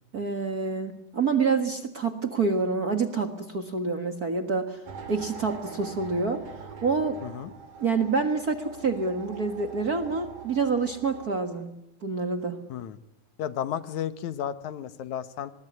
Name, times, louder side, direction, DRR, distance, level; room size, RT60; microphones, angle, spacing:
voice 1, 0.1-4.8 5.1-6.4 6.8-7.2 7.8-11.7 12.0-12.6, right 4 dB, 40° right, 8 dB, 1.6 m, -27 dB
sound 1, 4.9-11.3, right 5 dB, 85° right, 4.4 m, -43 dB
voice 2, 13.4-15.5, left 10 dB, 75° left, 14 dB, 2.4 m, -33 dB
24.0 x 21.0 x 9.7 m, 0.85 s
omnidirectional pair, 3.5 m